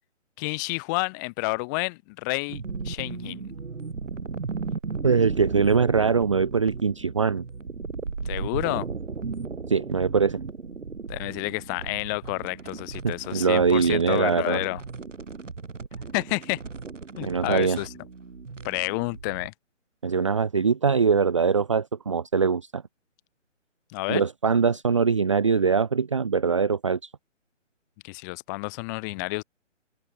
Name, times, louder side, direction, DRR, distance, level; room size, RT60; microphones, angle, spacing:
voice 1, 0.4-3.6 8.2-8.9 11.1-14.8 16.1-16.6 17.2-17.9 18.6-19.5 23.9-24.2 28.0-29.4, left 29 dB, 15° left, 7.9 m, -30 dB
sound 1, 2.5-19.5, right 4 dB, 75° right, 7.1 m, -36 dB
voice 2, 5.0-7.4 9.7-10.4 13.0-14.6 17.2-17.8 20.0-22.8 24.1-27.1, right 5 dB, 25° right, 0.8 m, -22 dB
hypercardioid pair, 170°, 37 cm